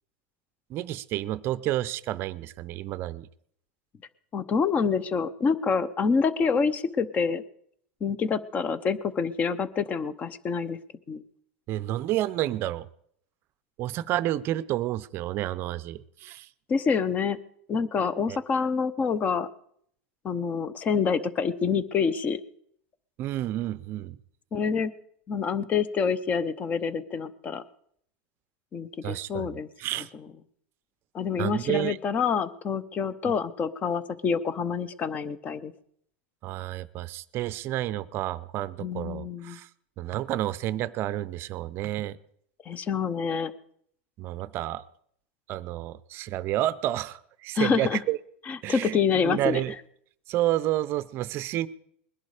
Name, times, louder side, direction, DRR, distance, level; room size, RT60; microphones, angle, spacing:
voice 1, 0.7-3.3 11.7-12.9 13.8-16.5 18.3-18.4 23.2-24.2 29.0-29.5 29.8-30.1 31.4-32.0 33.2-33.3 36.4-39.7 40.0-42.2 44.2-44.8 45.5-48.2 48.6-49.0 49.2-49.7 50.3-51.7, right 14 dB, 40° right, 17 dB, 0.6 m, -30 dB
voice 2, 4.3-7.4 8.0-10.8 11.1-11.2 16.7-17.4 17.7-19.5 20.2-22.4 24.5-24.9 25.3-27.6 28.7-29.7 31.1-35.7 38.8-39.6 42.7-43.5 47.6-48.0 48.5-49.6, left 5 dB, 25° left, 17 dB, 0.8 m, -27 dB
21.0 x 11.0 x 4.9 m, 0.68 s
supercardioid pair, 140°, 6 cm